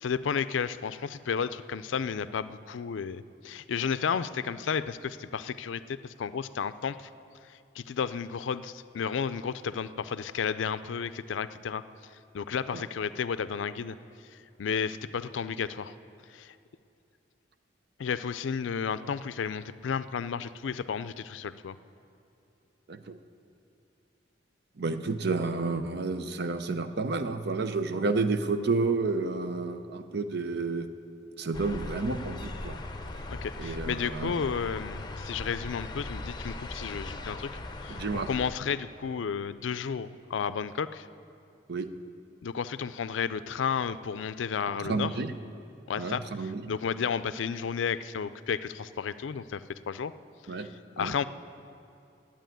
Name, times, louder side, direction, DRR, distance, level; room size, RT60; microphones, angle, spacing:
voice 1, 0.0-7.1 7.8-11.8 12.3-14.0 14.3-15.9 16.3-16.5 18.0-21.7 33.3-37.5 37.8-41.1 42.4-45.1 45.9-50.1 50.5-50.6 51.0-51.2, left 6 dB, 90° left, 14 dB, 0.4 m, -32 dB
voice 2, 24.8-30.9 31.4-32.8 33.6-34.4 37.9-38.3 41.7-41.9 44.8-45.3 46.0-46.7 50.5-50.7 51.0-51.1, right 3 dB, 60° right, 9 dB, 0.7 m, -30 dB
sound 1, 31.5-38.5, left 2 dB, 25° left, 0.7 m, -39 dB
11.5 x 8.8 x 9.1 m, 2.7 s
head